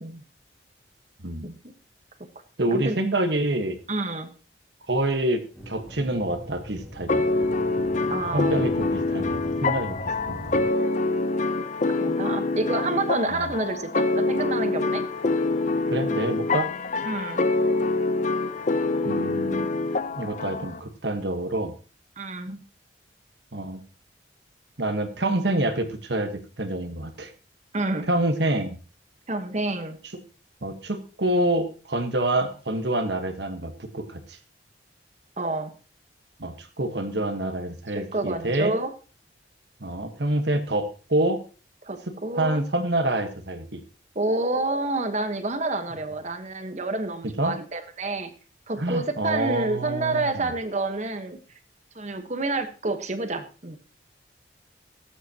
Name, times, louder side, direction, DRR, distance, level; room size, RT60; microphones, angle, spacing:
voice 1, 2.6-3.8 4.9-7.2 8.3-10.0 10.3-10.5 15.9-16.7 19.0-19.7 20.2-21.7 23.5-23.8 24.8-27.3 28.1-28.8 30.6-34.4 36.4-38.7 39.8-41.4 42.3-43.8 47.4-47.5 48.8-50.5, right 1 dB, 70° right, 8 dB, 1.4 m, -27 dB
voice 2, 3.9-4.3 8.1-8.6 12.0-15.0 17.0-17.4 22.2-22.6 27.7-28.1 29.3-30.0 35.4-35.7 37.9-38.9 41.8-42.6 44.1-48.3 48.7-51.4 51.9-53.8, right 2 dB, 40° right, 8 dB, 1.3 m, -28 dB
sound 1, 5.5-10.7, equal, 5° right, 2.7 m, -40 dB
sound 2, 7.1-20.8, left 3 dB, 40° left, 0.6 m, -25 dB
19.5 x 8.1 x 2.9 m, 0.36 s
head